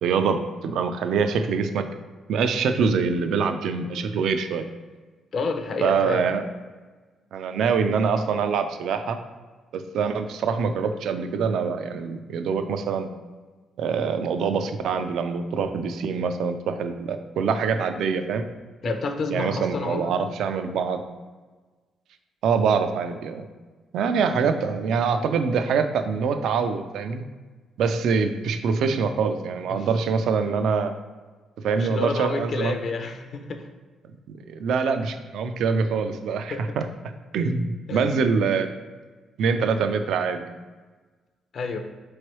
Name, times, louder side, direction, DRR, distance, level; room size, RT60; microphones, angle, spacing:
voice 1, 0.0-1.9 2.3-4.6 5.8-6.4 7.3-9.2 9.7-13.1 13.8-18.4 19.3-21.0 22.4-23.5 23.9-27.2 27.8-30.9 31.6-32.8 34.5-36.9 37.3-38.7 39.4-40.5, right 5 dB, 75° right, 8 dB, 0.3 m, -24 dB
voice 2, 5.3-6.2 18.8-20.2 29.8-29.9 31.8-33.7 36.5-36.6 37.9-38.0 41.5-41.8, left 4 dB, 50° left, 6 dB, 0.4 m, -29 dB
4.4 x 3.1 x 3.0 m, 1.3 s
cardioid pair, 110°, 0 cm